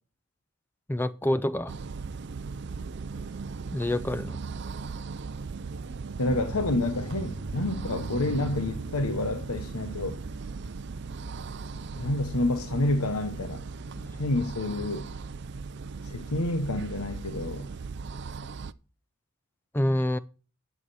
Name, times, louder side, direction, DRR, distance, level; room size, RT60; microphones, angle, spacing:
voice 1, 0.9-1.7 3.7-4.4 13.9-14.1 19.7-20.2, left 1 dB, 10° left, 0.4 m, -27 dB
sound 1, 1.7-18.7, right 4 dB, 50° right, 0.4 m, -38 dB
voice 2, 6.2-10.2 12.0-13.7 14.0-15.1 16.0-17.7, left 2 dB, 85° left, 1.1 m, -29 dB
sound 2, 6.3-15.0, right 1 dB, 70° right, 0.9 m, -43 dB
11.0 x 7.6 x 4.2 m
head